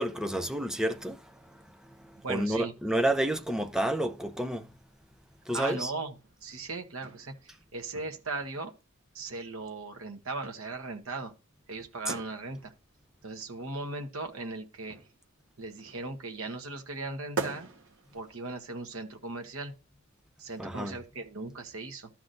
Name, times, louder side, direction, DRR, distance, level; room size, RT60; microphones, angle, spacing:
voice 1, 0.0-1.6 2.0-4.7 5.5-5.9 20.6-20.9, right 1 dB, 5° right, 0.6 m, -30 dB
voice 2, 2.2-2.7 5.5-6.1 6.4-8.7 9.1-11.3 11.7-12.7 13.2-15.0 15.6-17.7 18.1-19.7 20.4-22.1, right 3 dB, 90° right, 1.1 m, -38 dB
sound 1, 6.1-9.2 9.9-10.7 10.9-11.0 11.3-11.6 12.1-17.0 17.4-19.9 20.2-20.3, right 4 dB, 65° right, 1.4 m, -44 dB
13.0 x 5.8 x 2.6 m
head